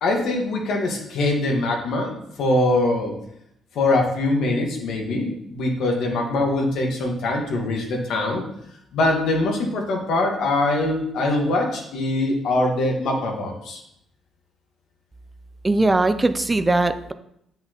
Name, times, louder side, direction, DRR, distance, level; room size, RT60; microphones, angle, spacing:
voice 1, 0.0-3.1 3.7-8.4 8.9-13.8, left 2 dB, 80° left, 1 dB, 1.5 m, -23 dB
voice 2, 15.6-17.1, right 2 dB, 20° right, 10 dB, 0.4 m, -20 dB
7.7 x 5.6 x 3.0 m, 0.75 s
cardioid pair, 90°, 0 cm